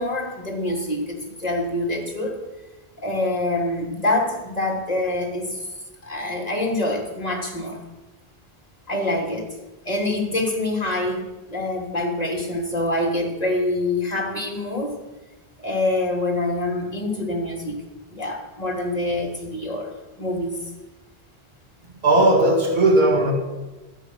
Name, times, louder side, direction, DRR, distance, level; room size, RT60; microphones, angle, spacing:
voice 1, 0.0-2.4 3.0-5.6 6.0-7.8 8.9-9.5 9.8-15.0 15.6-17.8 18.1-19.9 20.2-20.7, left 2 dB, 40° left, 0 dB, 3.2 m, -25 dB
voice 2, 22.0-23.3, right 2 dB, 50° right, 0 dB, 2.5 m, -17 dB
21.5 x 8.8 x 6.5 m, 1.1 s
omnidirectional pair, 1.0 m